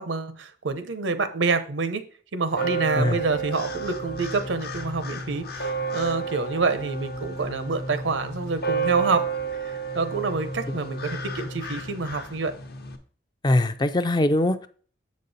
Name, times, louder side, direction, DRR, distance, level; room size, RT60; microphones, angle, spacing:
voice 1, 0.0-2.0 2.3-9.3 9.6-12.5, right 4 dB, 90° right, 11 dB, 0.8 m, -27 dB
sound 1, 2.5-13.0, right 4 dB, 55° left, 0.9 m, -31 dB
voice 2, 13.4-14.7, left 1 dB, 25° left, 10 dB, 0.4 m, -22 dB
7.6 x 5.3 x 4.0 m, 0.43 s
head